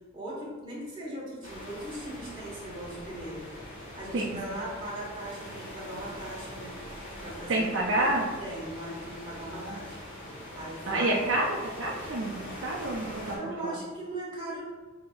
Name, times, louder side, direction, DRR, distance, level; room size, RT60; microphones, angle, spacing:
voice 1, 0.1-3.4 3.9-6.7 7.2-11.1 13.3-14.6, right 1 dB, 25° right, -6 dB, 1.3 m, -39 dB
sound 1, 1.4-13.4, equal, 40° left, 1.2 m, -43 dB
voice 2, 7.5-8.3 9.6-9.7 10.9-13.4 13.6-13.8, right 1 dB, 65° right, -3 dB, 0.5 m, -28 dB
6.2 x 2.8 x 2.4 m, 1.4 s
head